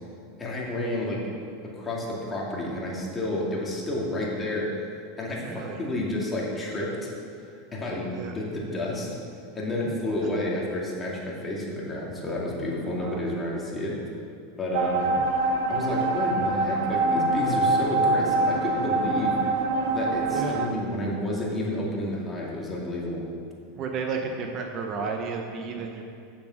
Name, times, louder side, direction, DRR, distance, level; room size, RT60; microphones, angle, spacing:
voice 1, 0.4-1.2 1.6-4.7 5.2-7.1 7.4-9.1 9.5-14.0 14.6-15.1 15.7-19.4 19.9-23.2, left 1 dB, 20° left, -4 dB, 2.4 m, -30 dB
voice 2, 5.4-5.8 8.1-8.3 12.9-13.2 20.3-20.6 23.8-26.0, right 5 dB, 40° right, 3 dB, 0.9 m, -32 dB
sound 1, 14.7-20.7, right 2 dB, 75° right, 0.9 m, -25 dB
8.5 x 7.2 x 6.4 m, 2.5 s
supercardioid pair, 120°, 0 cm